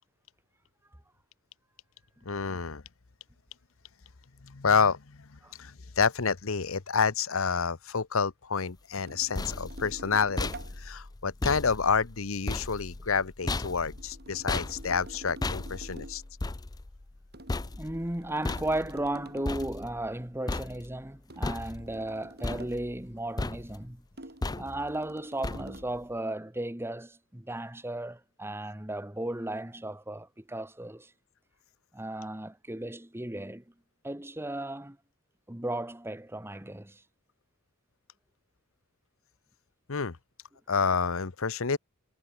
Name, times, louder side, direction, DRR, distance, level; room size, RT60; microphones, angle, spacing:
voice 1, 2.2-2.8 4.4-10.5 10.8-16.2 39.9-40.2 40.7-41.8, left 5 dB, 65° left, 0.9 m, -29 dB
sound 1, 9.0-20.2 20.5-21.1 21.4-22.1 22.4-23.1 23.4-23.9 24.4-25.0 25.4-26.0, left 2 dB, 20° left, 0.5 m, -36 dB
sound 2, 9.0-10.9 13.4-16.3 17.3-19.9 21.3-22.9 24.2-26.0, right 1 dB, 50° right, 6.6 m, -48 dB
voice 2, 17.8-24.0 24.5-31.1 31.9-33.6 34.0-35.0 35.5-37.0, right 1 dB, 10° right, 1.4 m, -35 dB
head